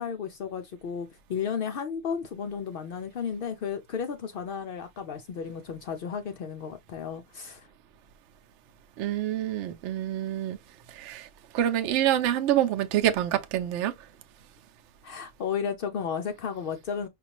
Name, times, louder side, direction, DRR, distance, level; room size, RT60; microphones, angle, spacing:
voice 1, 0.0-7.7 15.0-17.1, left 7 dB, 75° left, 0.5 m, -33 dB
voice 2, 9.0-10.6 10.9-11.3 11.5-13.9, right 11 dB, 65° right, 0.8 m, -26 dB
5.2 x 2.4 x 2.8 m
omnidirectional pair, 1.5 m